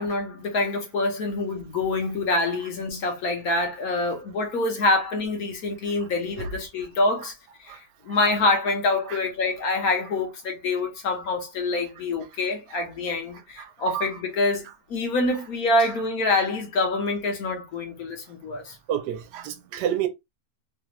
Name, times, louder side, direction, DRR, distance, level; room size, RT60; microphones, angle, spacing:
voice 1, 0.0-7.3 7.6-7.7 8.0-14.6 14.9-18.7, left 2 dB, 65° left, 1.4 m, -26 dB
voice 2, 13.6-14.2 18.9-20.1, right 10 dB, 80° right, 1.2 m, -29 dB
3.4 x 2.4 x 2.9 m
omnidirectional pair, 1.8 m